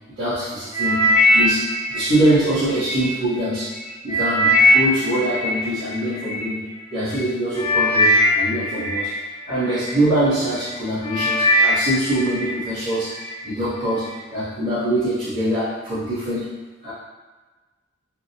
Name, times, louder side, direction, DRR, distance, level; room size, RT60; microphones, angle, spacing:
voice 1, 0.2-3.7 4.0-6.6 6.9-9.1 9.5-13.2 13.4-16.5 16.8-16.9, right 1 dB, 75° right, -16 dB, 1.3 m, -23 dB
sound 1, 0.7-3.1 3.6-6.4 7.1-7.3 7.5-9.9 10.4-10.7 11.0-12.5 12.9-13.4 14.0-14.1, left 1 dB, 25° left, 0.6 m, -20 dB
3.4 x 2.3 x 2.8 m, 1.3 s
head